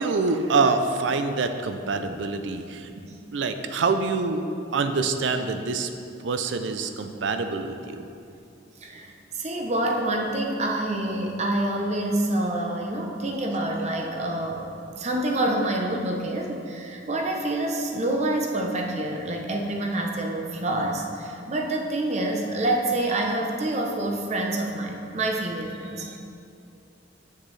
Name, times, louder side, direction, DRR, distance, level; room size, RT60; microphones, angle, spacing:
voice 1, 0.0-2.9 3.3-4.4 4.7-5.9 6.2-8.1 26.0-26.2, right 4 dB, 75° right, 8 dB, 0.4 m, -25 dB
voice 2, 8.8-26.2, right 1 dB, 35° right, 1 dB, 0.7 m, -27 dB
7.4 x 6.5 x 3.2 m, 2.5 s
head